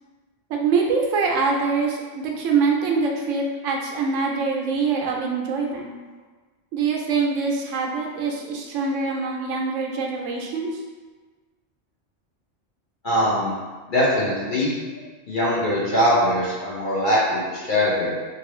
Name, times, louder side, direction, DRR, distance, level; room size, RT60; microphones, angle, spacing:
voice 1, 0.5-5.9 6.7-10.8, right 4 dB, 85° right, 0 dB, 0.9 m, -24 dB
voice 2, 13.0-13.5 13.9-14.7 15.3-18.2, equal, 45° left, -7 dB, 0.9 m, -21 dB
2.9 x 2.6 x 3.0 m, 1.3 s
omnidirectional pair, 1.3 m